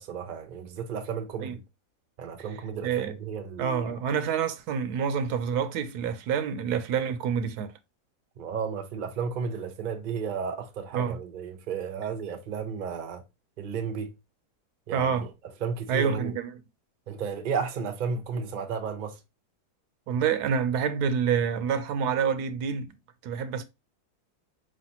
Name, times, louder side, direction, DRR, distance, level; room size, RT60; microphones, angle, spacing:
voice 1, 0.0-1.6 2.2-3.8 8.4-13.2 13.6-14.1 14.9-15.1 15.6-16.4 17.1-19.2, right 6 dB, 50° right, 0.5 m, -33 dB
voice 2, 2.8-3.1 3.6-7.7 10.9-11.2 14.9-15.3 15.9-16.5 20.1-22.9 23.2-23.6, right 7 dB, 80° right, 1.1 m, -27 dB
4.8 x 3.2 x 2.8 m
omnidirectional pair, 1.7 m